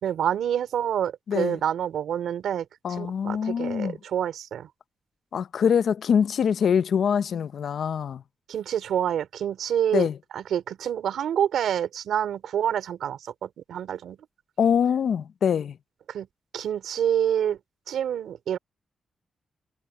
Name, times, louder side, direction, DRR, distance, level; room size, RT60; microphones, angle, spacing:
voice 1, 0.0-2.7 3.0-4.7 8.5-10.1 10.3-14.2 16.1-16.3 16.5-17.6 17.9-18.6, right 9 dB, 85° right, 3.9 m, -27 dB
voice 2, 1.3-1.6 2.8-4.0 5.3-8.2 9.9-10.2 14.6-15.8, left 7 dB, 70° left, 0.7 m, -24 dB
cardioid pair, 75°, 0 cm